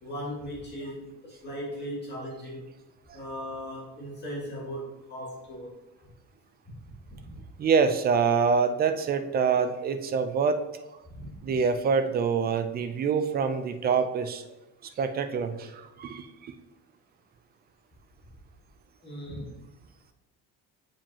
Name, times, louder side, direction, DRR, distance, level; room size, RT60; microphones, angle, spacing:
voice 1, 0.0-2.6 3.1-5.7 7.1-7.4 11.1-11.6 19.0-19.6, equal, 30° left, -5 dB, 1.9 m, -38 dB
voice 2, 7.6-10.6 11.4-14.4 15.0-15.7 16.0-16.3, right 5 dB, 30° right, 8 dB, 0.4 m, -25 dB
7.3 x 5.0 x 2.8 m, 0.98 s
cardioid pair, 170°, 33 cm